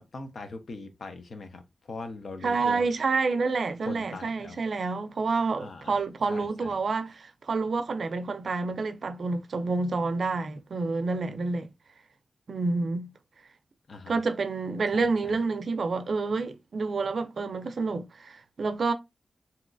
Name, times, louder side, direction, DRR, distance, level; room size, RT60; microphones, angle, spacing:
voice 1, 0.1-1.6 1.9-2.9 3.8-4.6 5.6-5.9 6.3-6.7 13.9-14.2 14.9-15.4, left 3 dB, 75° left, 0.6 m, -41 dB
voice 2, 2.4-11.7 12.5-13.1 14.1-18.9, right 4 dB, 75° right, 0.4 m, -28 dB
3.0 x 2.8 x 2.4 m
wide cardioid pair, 100°, 0 cm